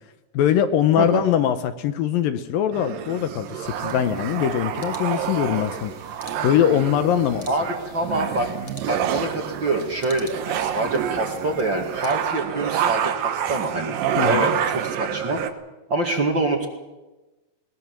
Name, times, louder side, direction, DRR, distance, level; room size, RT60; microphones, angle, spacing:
voice 1, 0.3-5.9 6.4-7.5 14.2-14.5, left 10 dB, 75° left, 10 dB, 2.5 m, -22 dB
sound 1, 2.7-15.5, right 9 dB, 70° right, 2.8 m, -28 dB
sound 2, 3.6-12.1, left 1 dB, 10° left, 1.8 m, -47 dB
voice 2, 7.5-8.5 8.8-14.0 14.2-15.4 15.9-16.7, right 2 dB, 35° right, 3 dB, 2.2 m, -25 dB
21.0 x 19.0 x 7.5 m, 1.1 s
omnidirectional pair, 4.4 m